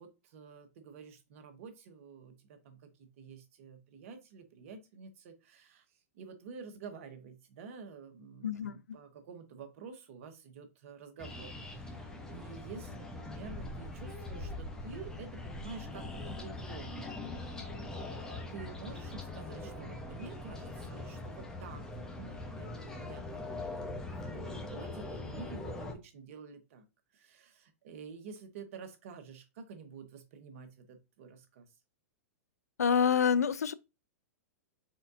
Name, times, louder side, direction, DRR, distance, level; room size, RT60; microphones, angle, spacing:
voice 1, 0.0-17.5 18.5-26.8 27.1-31.7, right 5 dB, 60° right, 1.2 m, -49 dB
voice 2, 8.4-9.0 32.8-33.7, left 7 dB, 90° left, 0.4 m, -27 dB
sound 1, 11.2-25.9, left 2 dB, 10° left, 0.9 m, -42 dB
4.3 x 3.6 x 2.7 m
hypercardioid pair, 115°, 8 cm